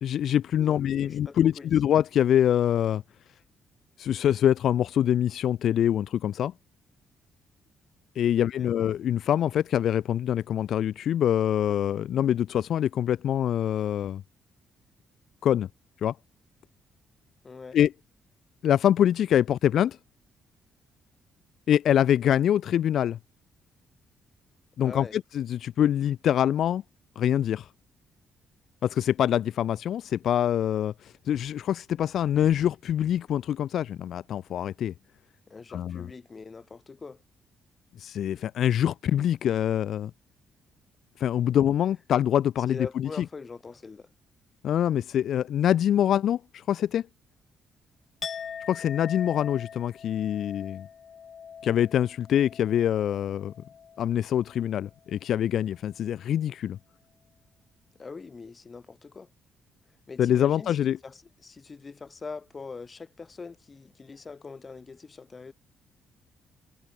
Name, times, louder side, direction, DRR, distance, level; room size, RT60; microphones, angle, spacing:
voice 1, 0.0-3.0 4.0-6.5 8.1-14.2 15.4-15.7 16.0-16.2 17.7-17.9 18.6-20.0 21.7-23.2 24.8-26.8 27.1-27.7 28.8-34.9 35.7-36.1 38.0-40.1 41.2-43.2 44.6-47.0 48.7-50.9 51.6-53.5 54.0-56.8 60.2-61.0, left 10 dB, 70° left, 1.0 m, -25 dB
voice 2, 0.6-1.7 8.4-8.7 17.4-17.8 24.8-25.2 35.5-37.2 42.7-44.1 58.0-59.3 60.1-65.5, left 4 dB, 30° left, 4.1 m, -43 dB
Chink clink, 48.2-54.2 54.5-54.9, left 7 dB, 50° left, 5.6 m, -42 dB
cardioid pair, 90°, 0 cm